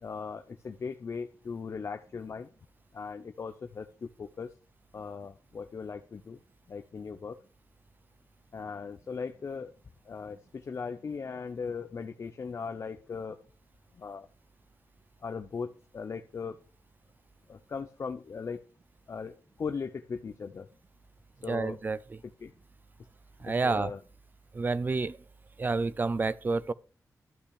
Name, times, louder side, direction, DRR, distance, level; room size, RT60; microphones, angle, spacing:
voice 1, 0.0-2.5 2.9-4.6 4.9-6.4 6.7-7.4 8.5-9.7 10.0-13.4 13.9-14.3 15.2-16.6 17.5-18.7 19.1-20.7 21.4-21.8 22.2-22.5 23.5-24.0, left 5 dB, 45° left, 0.7 m, -38 dB
voice 2, 21.5-22.0 23.4-23.9 24.5-25.2 25.6-26.7, right 3 dB, 30° right, 0.5 m, -29 dB
12.5 x 5.8 x 6.4 m
wide cardioid pair, 160°, 6 cm